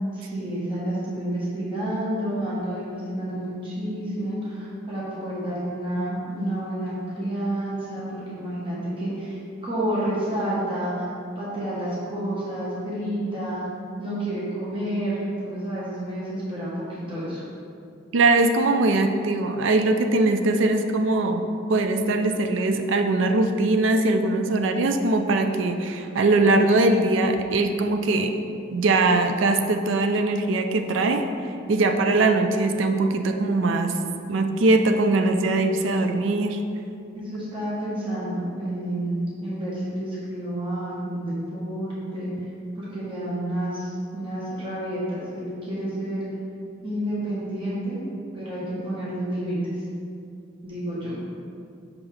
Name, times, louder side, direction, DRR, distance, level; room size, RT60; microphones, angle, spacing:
voice 1, 0.2-11.1 11.3-13.7 14.0-17.4 37.1-42.3 42.7-46.2 46.8-48.0 48.3-49.6 50.6-51.1, right 1 dB, 25° right, -8 dB, 1.4 m, -29 dB
voice 2, 18.1-21.4 21.7-28.3 28.7-31.2 31.7-34.0 34.3-36.6, right 2 dB, 65° right, 6 dB, 0.4 m, -21 dB
5.9 x 5.5 x 3.4 m, 2.5 s
head